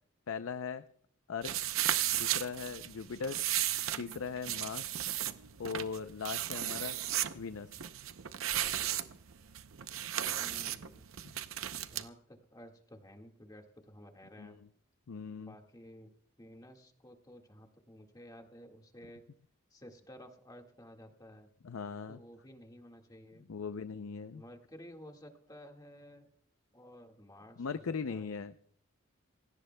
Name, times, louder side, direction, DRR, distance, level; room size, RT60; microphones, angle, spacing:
voice 1, 0.3-0.8 1.3-1.5 2.1-3.4 4.0-4.9 5.6-7.0 7.3-7.8 14.4-14.6 15.1-15.6 21.6-22.2 23.5-24.4 27.6-28.6, left 5 dB, 85° left, 11 dB, 0.5 m, -39 dB
sound 1, 1.4-12.0, right 12 dB, 75° right, 0.7 m, -35 dB
voice 2, 10.3-11.1 11.9-14.6 15.4-16.1 16.4-19.2 19.7-21.5 22.1-23.5 24.3-26.3 26.7-27.8 28.1-28.5, equal, 20° left, 3 dB, 1.8 m, -53 dB
27.0 x 17.0 x 2.2 m, 0.63 s
head